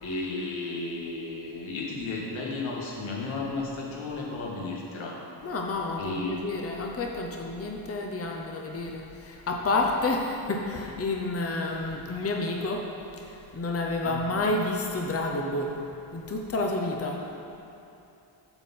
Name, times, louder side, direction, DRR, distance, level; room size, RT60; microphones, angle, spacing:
voice 1, 0.0-5.2 6.0-6.4 14.0-14.2, left 3 dB, 80° left, -3 dB, 1.7 m, -33 dB
voice 2, 5.4-12.9 13.1-15.8 16.1-17.2, left 2 dB, 30° left, 1 dB, 0.8 m, -30 dB
8.0 x 4.3 x 7.1 m, 2.8 s
cardioid pair, 80°, 47 cm